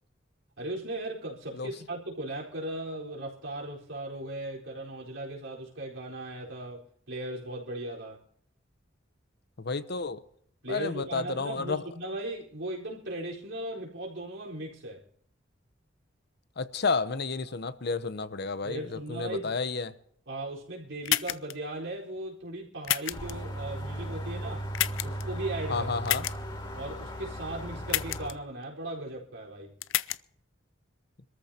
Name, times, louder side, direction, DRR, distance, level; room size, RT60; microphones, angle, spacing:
voice 1, 0.6-8.2 10.6-15.0 18.6-19.5 20.3-24.7 25.0-25.9 26.7-29.7, right 1 dB, 80° right, 4.4 m, -37 dB
voice 2, 9.6-10.2 10.7-11.8 16.6-19.9 25.7-26.3, left 4 dB, 55° left, 0.8 m, -31 dB
sound 1, 21.1-21.5 22.8-23.3 24.7-25.2 26.1-26.3 27.9-28.3 29.8-30.2, left 14 dB, 80° left, 0.5 m, -29 dB
sound 2, 23.1-28.3, right 1 dB, 25° left, 2.9 m, -37 dB
25.5 x 14.0 x 2.9 m
head